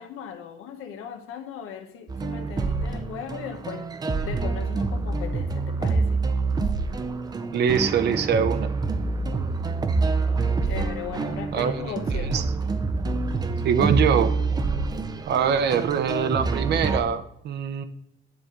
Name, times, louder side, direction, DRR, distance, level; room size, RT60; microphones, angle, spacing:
voice 1, 0.0-3.9 4.2-6.2 10.6-12.5, left 8 dB, 90° left, 5 dB, 1.2 m, -37 dB
sound 1, 2.1-17.0, right 3 dB, 20° right, 0.5 m, -26 dB
voice 2, 7.5-8.7 11.5-11.8 12.3-12.4 13.6-14.3 15.3-17.8, right 7 dB, 55° right, 10 dB, 0.8 m, -23 dB
9.6 x 3.8 x 6.7 m, 0.75 s
cardioid pair, 170°, 21 cm